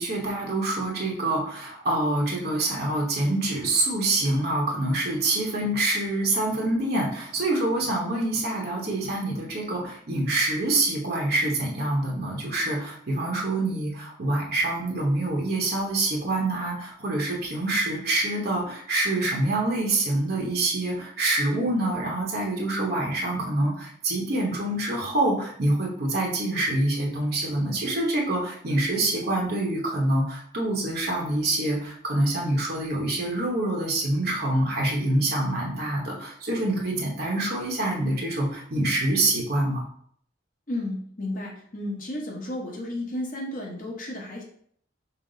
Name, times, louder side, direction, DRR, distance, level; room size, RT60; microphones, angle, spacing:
voice 1, 0.0-39.8, right 2 dB, 55° right, -2 dB, 1.0 m, -26 dB
voice 2, 40.7-44.4, left 1 dB, 50° left, -3 dB, 1.1 m, -33 dB
5.8 x 2.0 x 3.8 m, 0.62 s
head